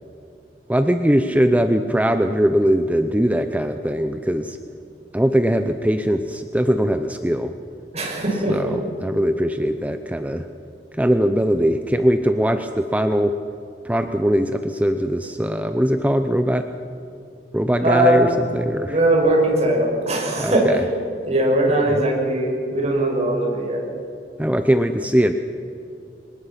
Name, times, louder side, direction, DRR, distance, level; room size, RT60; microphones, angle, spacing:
voice 1, 0.7-4.6 5.1-7.5 8.5-10.5 10.9-13.4 13.8-16.7 17.5-19.0 20.4-20.8 21.9-22.0 24.4-25.3, equal, 10° right, 8 dB, 0.7 m, -20 dB
voice 2, 7.9-8.6 17.8-18.2 18.9-20.8 21.2-23.8, right 1 dB, 40° right, -1 dB, 6.2 m, -20 dB
24.0 x 20.5 x 5.9 m, 2.7 s
head